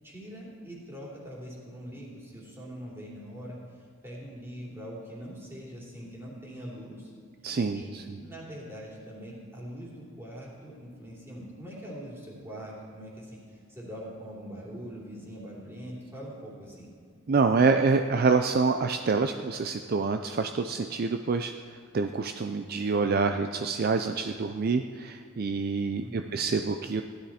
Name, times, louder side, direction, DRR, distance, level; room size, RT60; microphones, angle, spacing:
voice 1, 0.0-7.1 7.7-7.9 8.2-16.9 26.0-26.5, equal, 10° right, -5 dB, 3.1 m, -43 dB
voice 2, 7.4-8.0 17.3-21.5 21.9-27.0, right 4 dB, 45° right, 7 dB, 0.4 m, -26 dB
16.0 x 11.5 x 4.3 m, 2.2 s
head